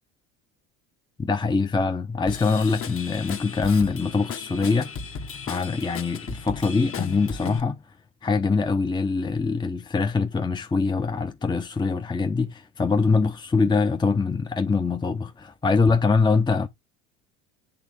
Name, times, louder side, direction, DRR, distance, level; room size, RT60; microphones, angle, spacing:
voice 1, 1.2-5.2 5.5-7.8 8.2-16.7, left 4 dB, 10° left, 0.8 m, -23 dB
Drum kit / Drum, 2.3-7.6, left 6 dB, 35° left, 1.4 m, -36 dB
8.8 x 3.5 x 5.1 m
hypercardioid pair, 80°, 37 cm